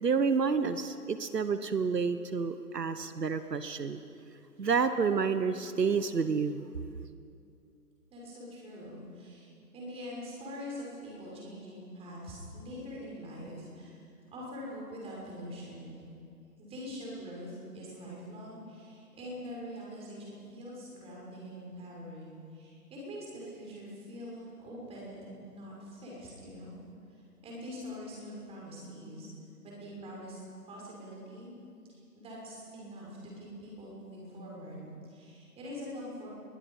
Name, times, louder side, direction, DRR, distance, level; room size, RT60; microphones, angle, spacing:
voice 1, 0.0-4.0 4.6-6.7, right 5 dB, 80° right, 11 dB, 1.3 m, -29 dB
voice 2, 8.1-16.0 16.6-26.8 27.4-31.5 31.9-36.3, equal, 10° right, -4 dB, 6.1 m, -44 dB
24.5 x 22.0 x 5.6 m, 2.5 s
figure-of-eight pair, 145°, 48 cm